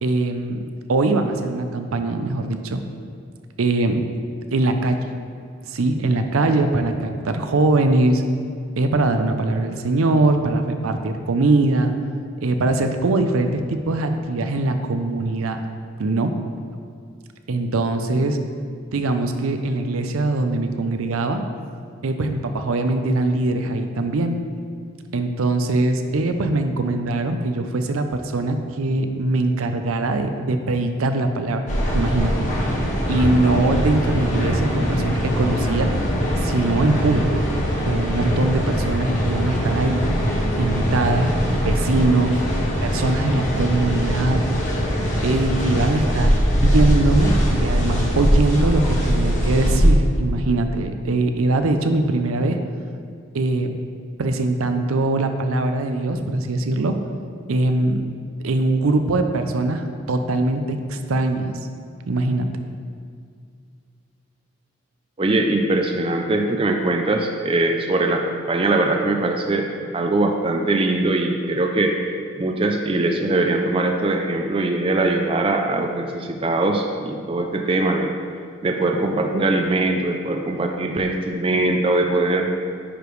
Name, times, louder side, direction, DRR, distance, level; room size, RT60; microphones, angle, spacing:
voice 1, 0.0-2.8 3.6-4.0 4.5-5.0 5.7-8.2 8.8-11.9 12.4-15.6 16.0-16.3 17.5-18.4 18.9-21.4 22.0-24.4 25.1-35.9 36.4-37.4 37.8-40.1 40.6-41.4 41.6-42.4 42.8-44.5 45.2-52.6 53.3-53.7 54.2-57.0 57.5-58.1 58.4-61.5 62.1-62.5, right 2 dB, 85° right, 7 dB, 0.5 m, -22 dB
sound 1, 31.7-49.9, equal, 35° left, 1.2 m, -21 dB
voice 2, 65.2-69.7 69.9-71.9 72.4-78.1 78.6-82.5, right 2 dB, 25° right, 3 dB, 0.4 m, -21 dB
9.9 x 4.9 x 3.1 m, 2.2 s
head